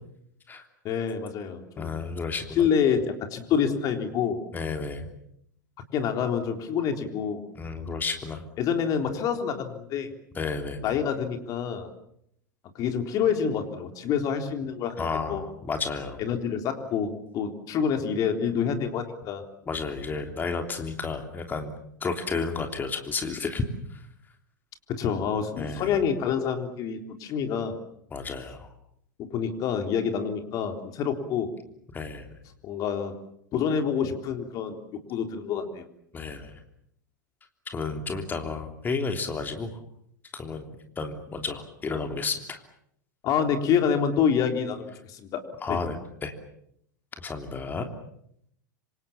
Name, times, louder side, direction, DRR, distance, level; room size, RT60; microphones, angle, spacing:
voice 1, 0.8-1.9 2.6-4.4 5.9-7.4 8.6-10.1 10.8-11.9 12.8-15.0 15.3-15.5 16.2-19.4 24.9-27.8 29.2-31.5 32.6-33.1 33.5-34.8 35.1-35.8 43.2-45.4 45.7-45.8, left 7 dB, 35° left, 6 dB, 3.7 m, -27 dB
voice 2, 1.8-2.7 4.5-5.1 7.5-8.4 10.3-10.9 15.0-16.2 19.7-21.7 22.0-23.6 23.9-24.0 25.6-26.0 28.1-28.7 31.9-32.4 36.1-36.6 37.7-39.8 40.3-40.7 41.0-42.6 45.6-46.3 47.2-47.8, left 4 dB, 20° left, 5 dB, 3.2 m, -32 dB
26.5 x 26.5 x 7.2 m, 0.73 s
figure-of-eight pair, 90°, 10 cm